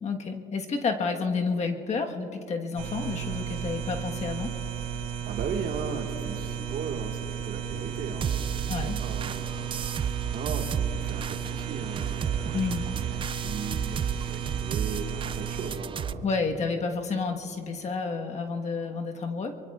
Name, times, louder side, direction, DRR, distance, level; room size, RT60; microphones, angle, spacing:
voice 1, 0.0-4.5 8.7-9.0 12.5-12.9 16.2-19.6, left 4 dB, 40° left, 3 dB, 1.4 m, -30 dB
sound 1, 2.8-15.7, right 8 dB, 90° right, 2.8 m, -34 dB
voice 2, 4.9-16.3, right 5 dB, 60° right, 2 dB, 1.8 m, -37 dB
sound 2, 8.2-16.1, right 8 dB, 30° right, 0.4 m, -33 dB
25.0 x 23.0 x 2.4 m, 2.7 s
cardioid pair, 110°, 17 cm